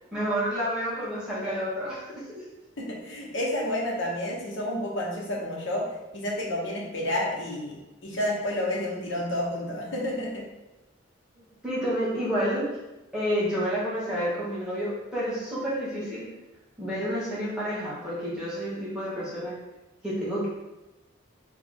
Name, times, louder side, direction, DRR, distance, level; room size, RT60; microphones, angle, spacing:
voice 1, 0.1-2.4 11.6-12.6 13.1-16.3 16.8-19.5 20.0-20.5, equal, 5° right, -9 dB, 1.5 m, -29 dB
voice 2, 2.8-7.8 8.0-10.5, left 1 dB, 75° left, -2 dB, 1.1 m, -30 dB
4.0 x 3.5 x 3.6 m, 1.0 s
head